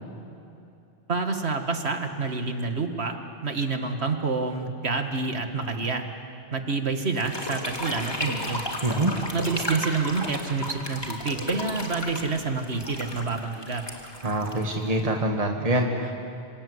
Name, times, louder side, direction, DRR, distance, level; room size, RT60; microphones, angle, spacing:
voice 1, 1.1-3.2 3.4-6.0 6.5-8.6 9.3-13.9, right 4 dB, 85° right, 5 dB, 2.2 m, -28 dB
sound 1, 7.1-15.1, left 1 dB, 25° left, 2.9 m, -34 dB
voice 2, 8.8-9.1 14.2-16.1, right 1 dB, 35° right, 2 dB, 1.8 m, -25 dB
27.0 x 26.5 x 8.1 m, 2.7 s
omnidirectional pair, 1.1 m